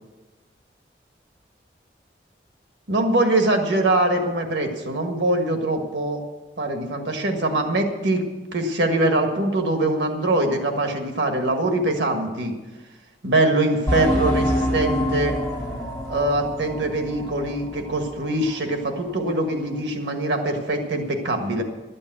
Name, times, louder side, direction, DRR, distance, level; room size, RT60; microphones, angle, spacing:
voice 1, 2.9-6.2 6.6-8.2 8.5-12.5 13.2-15.3 16.1-21.6, right 2 dB, 85° right, 4 dB, 1.6 m, -23 dB
sound 1, 13.9-18.2 18.5-18.6 19.1-19.2, left 1 dB, 15° left, 1.7 m, -26 dB
12.0 x 8.7 x 7.8 m, 1.2 s
head